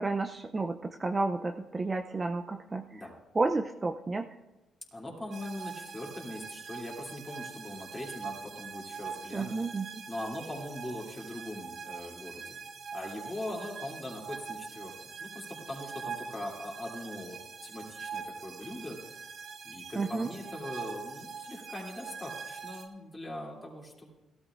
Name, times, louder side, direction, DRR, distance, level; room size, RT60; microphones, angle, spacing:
voice 1, 0.0-3.0 3.3-4.3 9.3-10.0 20.0-20.3, right 3 dB, 25° right, 6 dB, 0.5 m, -31 dB
voice 2, 4.9-9.6 10.1-12.6 12.9-14.9 15.2-19.0 19.6-24.1, left 1 dB, 15° left, -4 dB, 2.8 m, -41 dB
sound 1, 5.3-22.9, right 5 dB, 60° right, 1.4 m, -43 dB
17.0 x 13.0 x 2.5 m, 1.1 s
cardioid pair, 90°, 0 cm